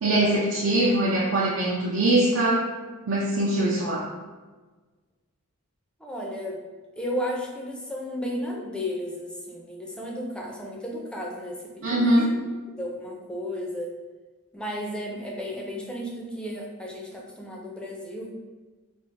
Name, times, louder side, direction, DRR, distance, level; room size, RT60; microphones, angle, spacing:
voice 1, 0.0-2.6 3.1-4.0 11.8-12.3, right 1 dB, 60° right, -5 dB, 0.5 m, -22 dB
voice 2, 6.0-6.6 7.0-12.4 12.8-13.9 14.5-18.3, equal, 5° left, -2 dB, 0.4 m, -33 dB
3.5 x 2.1 x 4.0 m, 1.3 s
head